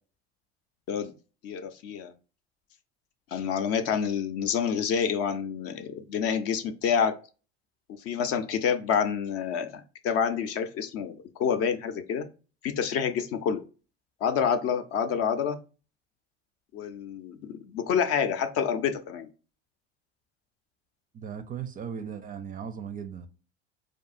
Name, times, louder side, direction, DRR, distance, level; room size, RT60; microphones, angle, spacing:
voice 1, 1.4-2.1 3.3-7.1 8.0-12.3 12.6-13.6 14.2-15.6 16.7-19.3, left 7 dB, 45° left, 0.6 m, -28 dB
voice 2, 21.1-23.3, right 7 dB, 25° right, 0.5 m, -37 dB
4.6 x 2.6 x 2.5 m
hypercardioid pair, 75°, 32 cm